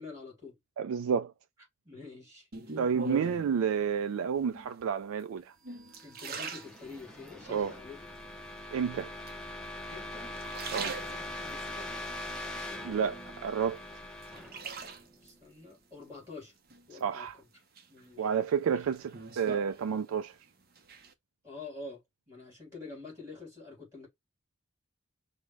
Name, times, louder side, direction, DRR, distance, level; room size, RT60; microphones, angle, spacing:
voice 1, 0.0-0.6 1.8-2.8 6.0-8.1 9.9-10.4 10.8-12.1 15.2-16.5 16.9-17.5 17.9-18.4 21.4-22.0 22.3-24.1, left 3 dB, 15° right, 3.3 m, -47 dB
voice 2, 0.8-1.3 2.8-5.5 7.5-7.7 8.7-9.1 10.7-10.9 12.8-13.8 17.0-17.4 18.2-20.3, right 7 dB, 85° right, 0.3 m, -30 dB
sound 1, 2.5-3.6 4.4-4.9 5.4-7.4 7.9-8.5 9.3-9.9 10.3-11.6 12.1-13.3 13.7-15.3 16.7-17.3 17.8-20.4 20.6-21.1, right 3 dB, 45° right, 0.7 m, -42 dB
sound 2, 5.9-15.7, left 1 dB, 5° left, 0.7 m, -42 dB
5.0 x 2.1 x 4.6 m
head